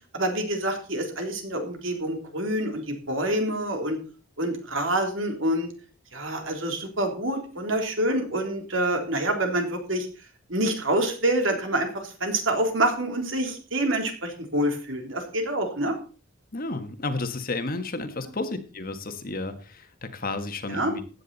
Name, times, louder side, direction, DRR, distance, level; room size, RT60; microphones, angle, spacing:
voice 1, 0.1-4.0 4.4-5.7 6.1-10.1 10.5-16.0 20.7-21.0, right 1 dB, 65° right, 4 dB, 3.4 m, -27 dB
voice 2, 16.5-21.0, left 2 dB, 45° left, 8 dB, 1.5 m, -32 dB
15.0 x 9.8 x 4.1 m, 0.36 s
head